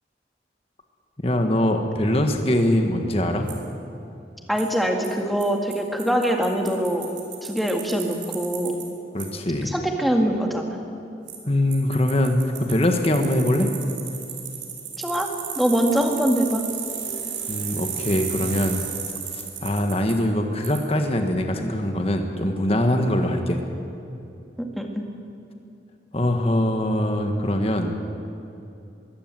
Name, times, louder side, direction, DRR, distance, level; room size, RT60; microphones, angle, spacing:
voice 1, 1.2-3.5 9.1-9.7 11.5-13.7 17.5-18.8 19.3-23.6 26.1-27.9, left 1 dB, 35° left, 4 dB, 1.5 m, -22 dB
Bicycle, 3.5-3.6 4.6-4.7 5.0-5.1 5.4-5.5 5.7-5.8 6.0-8.8 9.2-9.3 11.3-11.4 11.7-20.1 20.6-20.8, right 8 dB, 85° right, 3.9 m, -33 dB
voice 2, 4.5-7.1 7.4-8.8 9.7-10.8 15.0-15.3 15.6-16.6 24.6-25.1, equal, ahead, 2 dB, 2.0 m, -23 dB
22.0 x 16.5 x 7.7 m, 2.8 s
head